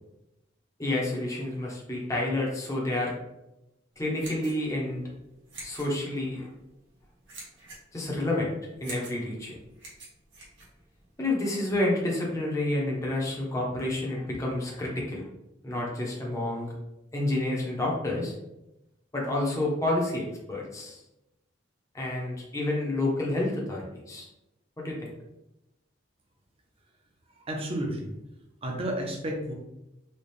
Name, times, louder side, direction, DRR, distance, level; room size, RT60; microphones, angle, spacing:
voice 1, 0.8-3.1 4.0-5.0 5.6-6.5 7.9-8.5 8.8-9.5 11.2-15.2 15.6-16.7 17.1-18.3 19.1-21.0 21.9-24.3 24.8-25.1, left 1 dB, 15° left, -3 dB, 0.8 m, -29 dB
sound 1, 3.9-11.3, right 3 dB, 75° right, 1.4 m, -47 dB
voice 2, 27.5-28.1 28.6-29.5, right 1 dB, 30° right, 1 dB, 0.7 m, -31 dB
4.2 x 2.3 x 3.3 m, 0.90 s
head